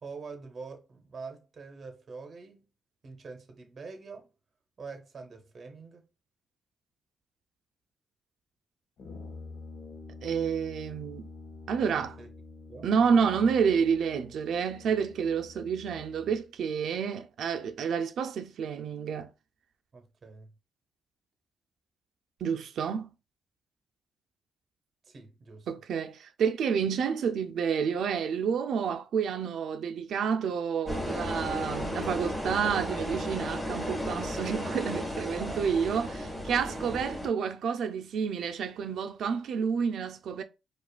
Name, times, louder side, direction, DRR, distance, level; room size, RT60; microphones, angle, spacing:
voice 1, 0.0-2.7 3.0-4.3 4.8-6.1 11.8-12.3 12.7-12.9 19.9-20.5 25.0-25.7 35.4-35.7 36.8-37.0, right 4 dB, 40° right, 0.8 m, -45 dB
Brass instrument, 9.0-16.5, left 4 dB, 60° left, 0.8 m, -47 dB
voice 2, 10.2-11.3 11.7-12.1 12.8-19.3 22.4-23.1 25.7-40.4, right 6 dB, 70° right, 0.5 m, -29 dB
sound 1, 30.9-37.3, equal, ahead, 1.8 m, -34 dB
4.8 x 2.3 x 2.3 m
cardioid pair, 130°, 0 cm